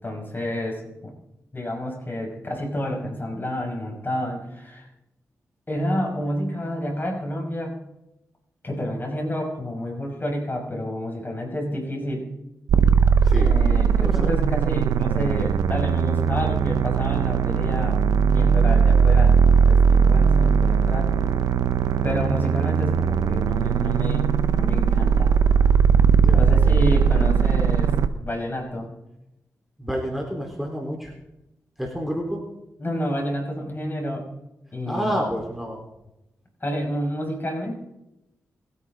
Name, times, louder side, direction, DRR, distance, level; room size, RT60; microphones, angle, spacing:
voice 1, 0.0-1.1 1.5-4.9 5.7-7.8 8.6-12.3 13.3-21.1 22.0-25.3 26.3-27.9 28.2-28.9 32.0-32.1 32.8-34.2 34.7-35.2 36.6-37.8, left 1 dB, 35° left, 0 dB, 6.0 m, -29 dB
sound 1, 12.7-28.1, right 6 dB, 90° right, 0.8 m, -19 dB
voice 2, 13.2-13.6 14.0-14.3 26.2-27.0 29.8-31.1 31.8-32.4 34.9-35.8, equal, ahead, -1 dB, 4.5 m, -29 dB
27.0 x 9.7 x 4.0 m, 0.90 s
cardioid pair, 45°, 6 cm